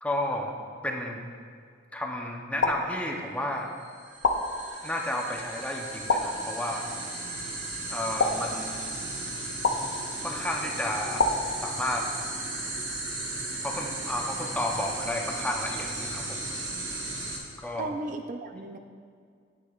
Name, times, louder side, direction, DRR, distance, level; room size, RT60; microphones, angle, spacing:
voice 1, 0.0-0.6 0.8-1.2 1.9-3.7 4.8-6.8 7.9-8.8 10.2-11.2 11.6-12.1 13.6-16.4 17.6-17.9, left 1 dB, 10° left, 0 dB, 0.7 m, -32 dB
sound 1, 2.6-3.5 4.2-5.1 6.1-6.9 8.2-9.1 9.6-10.4 11.2-12.2, left 3 dB, 80° left, 0.6 m, -29 dB
sound 2, 3.8-17.4, right 2 dB, 80° right, 1.4 m, -35 dB
voice 2, 17.8-18.8, right 2 dB, 45° right, 5 dB, 0.4 m, -35 dB
8.9 x 7.9 x 2.4 m, 2.1 s
head